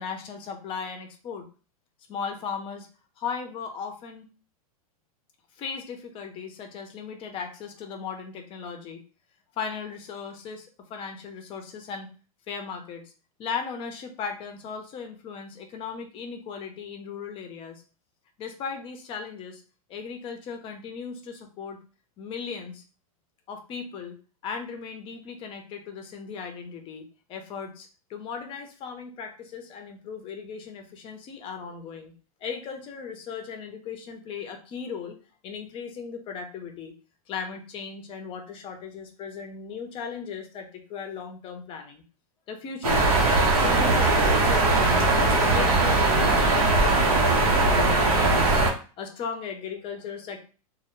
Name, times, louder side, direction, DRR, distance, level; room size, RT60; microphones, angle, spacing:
voice 1, 0.0-1.4 2.1-2.9 3.2-4.3 5.6-9.0 9.6-12.1 12.5-13.1 13.4-17.8 18.4-19.6 19.9-21.8 22.2-22.8 23.5-24.2 24.4-32.1 32.4-35.2 35.4-36.9 37.3-42.0 42.5-43.2 43.5-48.5 49.0-50.4, left 6 dB, 30° left, 5 dB, 0.5 m, -37 dB
sound 1, 42.8-48.7, right 2 dB, 80° right, 0.8 m, -20 dB
2.1 x 2.0 x 3.0 m, 0.36 s
hypercardioid pair, 125°, 19 cm